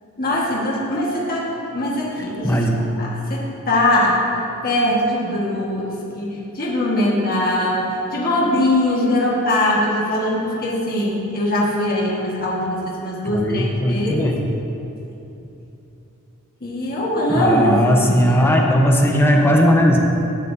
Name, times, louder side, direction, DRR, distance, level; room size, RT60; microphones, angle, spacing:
voice 1, 0.2-14.3 16.6-18.5, left 1 dB, 45° left, -5 dB, 1.6 m, -21 dB
voice 2, 2.2-2.8 13.2-14.4 17.3-20.0, equal, 10° left, 0 dB, 0.9 m, -17 dB
13.5 x 9.3 x 2.7 m, 3.0 s
head